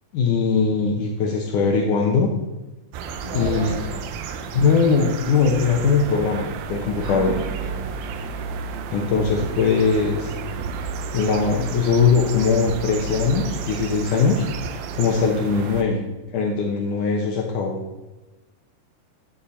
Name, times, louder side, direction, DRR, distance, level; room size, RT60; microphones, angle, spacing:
voice 1, 0.1-2.3 3.3-3.7 4.5-7.3 8.9-10.3 11.1-14.4 15.0-16.0 16.3-17.8, left 5 dB, 85° left, 0 dB, 1.8 m, -20 dB
sound 1, 2.9-15.8, right 6 dB, 80° right, 2.1 m, -32 dB
voice 2, 3.2-3.9 7.0-7.8, right 1 dB, 50° right, -10 dB, 5.6 m, -33 dB
13.0 x 8.4 x 4.3 m, 1.1 s
omnidirectional pair, 5.1 m